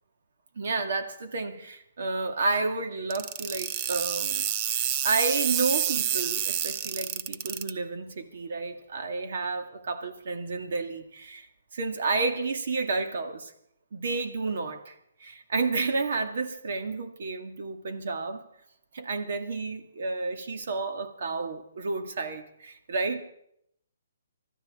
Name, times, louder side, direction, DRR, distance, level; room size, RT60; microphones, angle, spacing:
voice 1, 0.6-4.4 5.0-11.5 11.7-13.5 13.9-18.4 18.9-23.3, right 3 dB, 60° right, 2.0 m, -31 dB
sound 1, 3.1-7.7, right 10 dB, 30° right, 0.6 m, -28 dB
24.0 x 13.0 x 3.7 m
hypercardioid pair, 160°, 0 cm